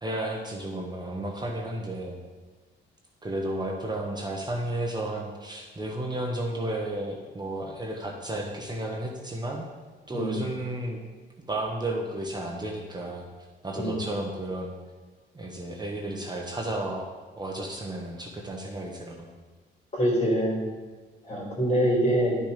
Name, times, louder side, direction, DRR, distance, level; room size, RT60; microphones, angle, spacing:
voice 1, 0.0-2.2 3.2-9.6 10.1-11.0 11.4-13.3 13.6-14.7 15.3-19.3, right 1 dB, 20° right, 0 dB, 1.2 m, -33 dB
voice 2, 19.9-20.6 21.2-22.4, equal, 35° left, -3 dB, 3.3 m, -24 dB
10.5 x 6.1 x 5.1 m, 1.3 s
cardioid pair, 90°, 20 cm